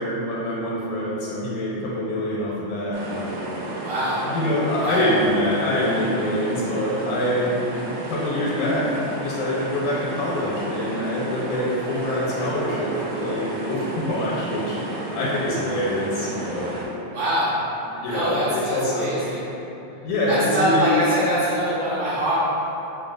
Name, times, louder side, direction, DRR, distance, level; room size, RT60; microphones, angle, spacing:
voice 1, 0.0-3.4 4.3-7.6 7.9-14.8 15.1-16.7 17.8-19.2 20.0-20.9, left 1 dB, 90° left, -7 dB, 2.0 m, -25 dB
sound 1, 2.9-16.9, right 1 dB, 85° right, 2.0 m, -32 dB
voice 2, 3.8-4.2 4.8-5.1 17.1-17.5 18.0-19.5 20.3-22.4, equal, 70° right, -13 dB, 2.6 m, -24 dB
5.9 x 2.3 x 2.4 m, 3.0 s
omnidirectional pair, 3.3 m